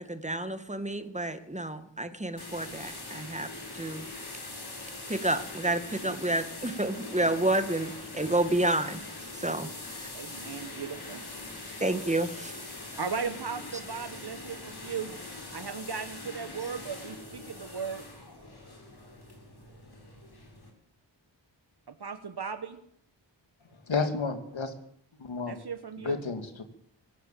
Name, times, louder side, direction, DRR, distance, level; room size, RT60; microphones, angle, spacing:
voice 1, 0.0-4.1 5.1-9.0 9.4-9.7 10.0-10.1 11.8-12.6, right 1 dB, 15° right, 10 dB, 1.9 m, -30 dB
sound 1, 2.4-20.7, left 2 dB, 55° left, 6.0 m, -42 dB
voice 2, 10.1-11.2 11.6-11.8 13.0-15.1 15.5-18.0 21.9-22.8 25.5-26.2, right 6 dB, 60° right, 10 dB, 1.3 m, -37 dB
voice 3, 23.7-24.7 25.2-25.6 26.0-26.6, left 4 dB, 90° left, 7 dB, 3.0 m, -31 dB
25.0 x 14.5 x 7.7 m, 0.67 s
wide cardioid pair, 100°, 45 cm